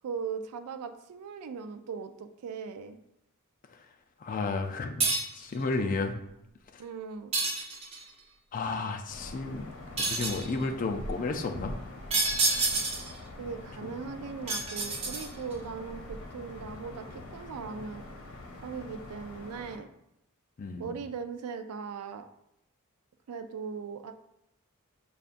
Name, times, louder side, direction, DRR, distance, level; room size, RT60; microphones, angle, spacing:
voice 1, 0.0-3.0 6.8-7.3 13.4-17.1 17.3-18.0 18.6-19.9 20.8-22.3 23.3-24.1, right 5 dB, 85° right, 8 dB, 0.4 m, -39 dB
voice 2, 4.2-5.1 5.3-6.1 6.7-6.8 8.5-9.7 10.0-11.8 16.6-16.7 20.6-20.9, left 3 dB, 40° left, 4 dB, 0.4 m, -32 dB
sound 1, 5.0-5.4 7.3-8.1 10.0-10.5 12.1-13.2 14.5-15.5, right 3 dB, 30° right, 0.6 m, -28 dB
sound 2, 9.1-19.8, left 1 dB, 65° left, 0.8 m, -44 dB
6.6 x 2.4 x 2.5 m, 0.81 s
head